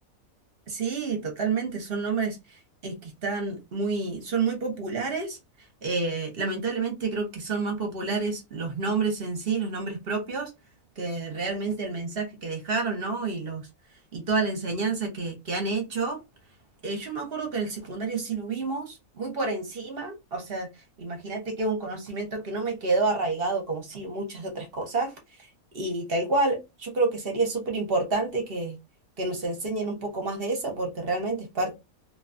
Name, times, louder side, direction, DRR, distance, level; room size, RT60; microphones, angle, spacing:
voice 1, 0.7-2.4 2.8-5.4 5.8-10.5 11.0-13.6 14.1-16.2 16.8-20.7 21.0-25.1 25.7-28.8 29.2-31.7, right 3 dB, 50° right, 0.9 m, -29 dB
2.6 x 2.2 x 2.5 m
omnidirectional pair, 1.5 m